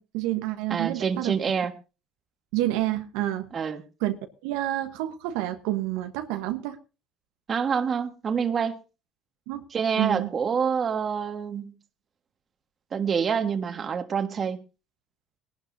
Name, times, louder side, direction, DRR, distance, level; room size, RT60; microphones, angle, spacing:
voice 1, 0.0-1.3 2.5-3.5 4.0-4.2 4.4-6.8 9.5-9.6 10.0-10.3, right 15 dB, 85° right, 6 dB, 1.2 m, -28 dB
voice 2, 0.7-1.7 3.5-3.8 7.5-8.8 9.7-11.7 12.9-14.6, right 6 dB, 40° right, 8 dB, 1.6 m, -27 dB
19.5 x 12.0 x 2.7 m, 0.31 s
supercardioid pair, 85°, 0 cm